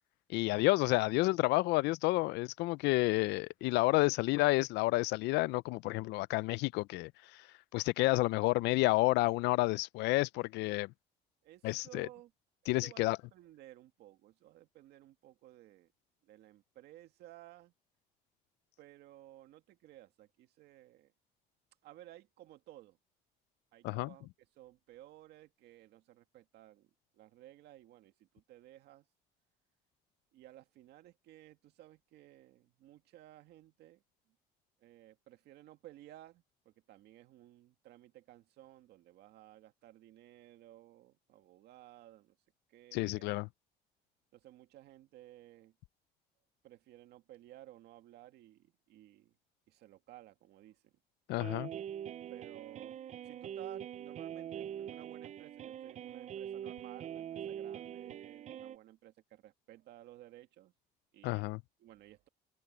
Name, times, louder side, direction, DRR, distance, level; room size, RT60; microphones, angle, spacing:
voice 1, 0.3-7.5 7.7-10.9 11.6-12.1 12.7-13.2 23.8-24.1 42.9-43.5 51.3-51.7 61.2-61.6, left 21 dB, 90° left, 0.4 m, -30 dB
voice 2, 11.4-12.3 12.6-15.9 16.2-17.7 18.8-21.1 21.8-23.0 23.7-24.3 24.5-29.1 30.3-34.0 34.8-42.4 42.7-43.3 44.3-45.8 46.6-49.3 49.7-50.9 52.3-60.7 61.1-62.3, right 14 dB, 80° right, 2.1 m, -56 dB
sound 1, 51.4-58.8, right 10 dB, 45° right, 0.5 m, -43 dB
cardioid pair, 110°, 17 cm